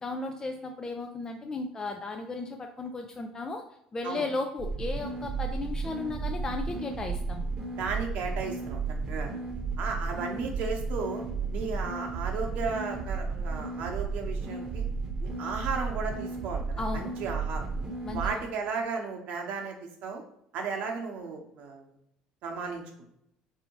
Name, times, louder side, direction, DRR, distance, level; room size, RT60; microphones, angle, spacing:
voice 1, 0.0-3.6 3.9-7.4 16.8-17.1 18.0-18.4, left 3 dB, 25° left, 4 dB, 0.4 m, -35 dB
sound 1, 4.6-18.3, right 4 dB, 25° right, 0.9 m, -33 dB
voice 2, 7.8-8.8 9.1-9.4 9.8-11.2 11.5-14.8 15.2-17.7 18.1-20.2 20.5-21.9 22.4-22.8, right 4 dB, 65° right, 2 dB, 0.9 m, -34 dB
4.2 x 2.7 x 2.9 m, 0.77 s
supercardioid pair, 80°, 3 cm